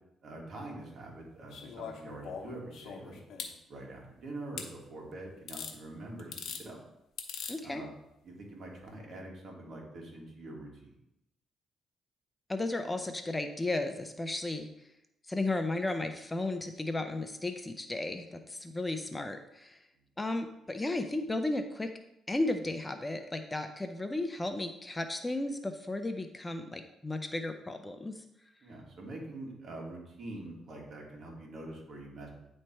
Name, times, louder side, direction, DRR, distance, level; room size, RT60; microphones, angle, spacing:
voice 1, 0.2-3.2 3.7-6.3 6.6-6.8 7.6-7.9 8.2-10.9 28.6-32.3, right 2 dB, 60° right, -1 dB, 2.0 m, -45 dB
sound 1, 1.5-3.5 4.6-4.7 5.5-5.8 6.2-6.6 7.2-7.6 8.8-8.9, left 6 dB, 75° left, 1.0 m, -41 dB
voice 2, 7.5-7.8 12.5-14.7 15.3-19.8 20.2-21.9 22.3-28.2, left 2 dB, 15° left, 6 dB, 0.5 m, -34 dB
9.6 x 3.3 x 4.4 m, 0.86 s
cardioid pair, 90°, 0 cm